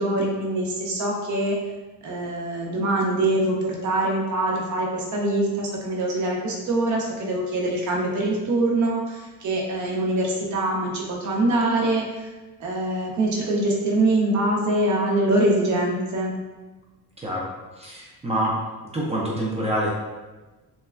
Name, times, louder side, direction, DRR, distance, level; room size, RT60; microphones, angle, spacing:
voice 1, 0.0-1.6 2.0-12.0 12.6-16.3, right 1 dB, 50° right, -2 dB, 0.7 m, -24 dB
voice 2, 17.2-17.5 17.8-18.6 18.9-19.9, right 1 dB, 20° right, -4 dB, 0.3 m, -26 dB
3.0 x 2.2 x 2.4 m, 1.2 s
cardioid pair, 150°, 38 cm